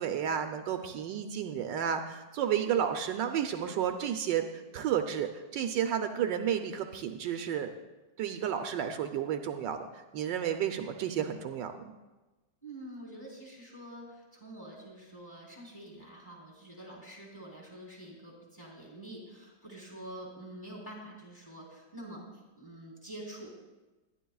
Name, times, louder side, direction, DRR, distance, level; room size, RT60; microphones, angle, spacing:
voice 1, 0.0-4.5 4.7-7.7 8.2-11.7, right 9 dB, 75° right, 6 dB, 1.3 m, -32 dB
voice 2, 12.6-23.6, right 1 dB, 5° left, -4 dB, 3.3 m, -47 dB
21.5 x 10.5 x 2.3 m, 1.1 s
omnidirectional pair, 2.0 m